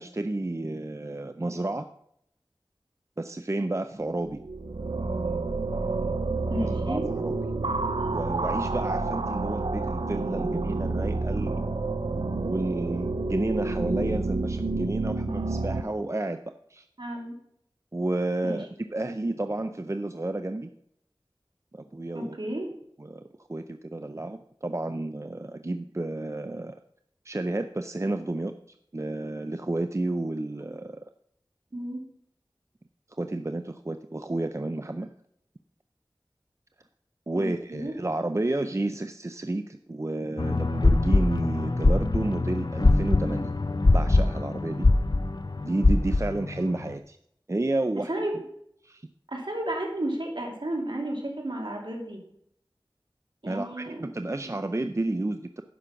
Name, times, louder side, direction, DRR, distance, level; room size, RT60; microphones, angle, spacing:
voice 1, 0.0-1.9 3.2-4.4 6.6-7.4 8.1-11.6 12.4-16.4 16.7-16.9 17.9-18.7 18.9-20.7 21.7-22.4 23.0-23.2 23.5-26.7 27.2-28.5 28.9-31.0 33.2-35.1 37.3-43.5 43.9-44.9 45.6-47.2 47.5-48.1 48.8-49.1 53.5-55.6, right 2 dB, 35° right, 8 dB, 0.5 m, -31 dB
sound 1, 4.3-15.8, right 3 dB, 85° right, 0.7 m, -29 dB
voice 2, 6.5-7.0 17.0-17.3 18.4-18.6 22.1-22.7 31.7-32.0 37.3-37.9 48.1-48.3 49.3-52.2 53.4-54.0, right 1 dB, 65° right, 0 dB, 2.7 m, -32 dB
sound 2, 40.4-46.9, left 2 dB, 50° left, 0.6 m, -23 dB
10.0 x 6.2 x 5.7 m, 0.72 s
wide cardioid pair, 40°, 9 cm